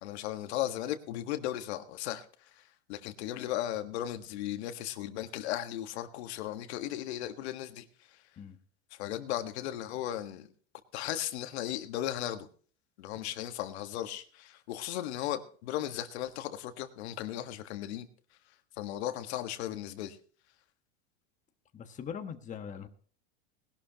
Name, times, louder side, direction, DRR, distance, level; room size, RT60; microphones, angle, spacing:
voice 1, 0.0-8.2 8.9-10.5 10.9-12.5 13.0-18.1 18.8-20.2, left 12 dB, 75° left, 7 dB, 1.6 m, -36 dB
voice 2, 21.7-22.9, left 7 dB, 20° left, 5 dB, 1.3 m, -41 dB
19.5 x 12.0 x 2.9 m, 0.44 s
supercardioid pair, 135°, 33 cm